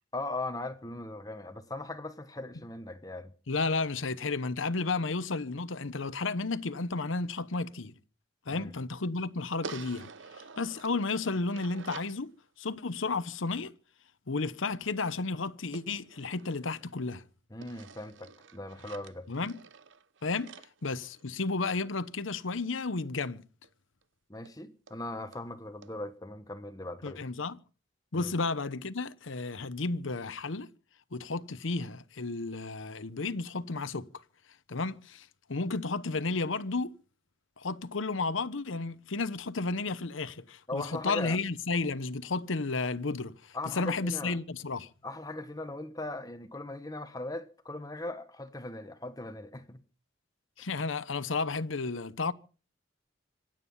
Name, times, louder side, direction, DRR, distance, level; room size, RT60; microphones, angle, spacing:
voice 1, 0.1-3.3 8.5-8.7 17.5-19.5 24.3-27.2 28.1-28.3 40.7-41.4 43.5-44.4 45.0-49.8, left 2 dB, 20° left, 1.1 m, -39 dB
voice 2, 3.5-7.9 8.5-10.1 10.6-13.7 14.3-17.2 19.3-19.6 20.2-20.5 20.8-23.4 27.0-27.6 28.1-30.7 31.1-34.1 34.7-36.9 37.6-44.9 50.6-52.3, left 3 dB, 85° left, 0.9 m, -32 dB
sound 1, 9.6-12.2 15.7-17.1 17.6-21.7 23.6-23.7 24.0-24.1 24.5-24.6 24.9-25.0 25.3-25.5 25.8-25.9, right 5 dB, 75° right, 0.8 m, -49 dB
26.0 x 9.1 x 5.6 m
head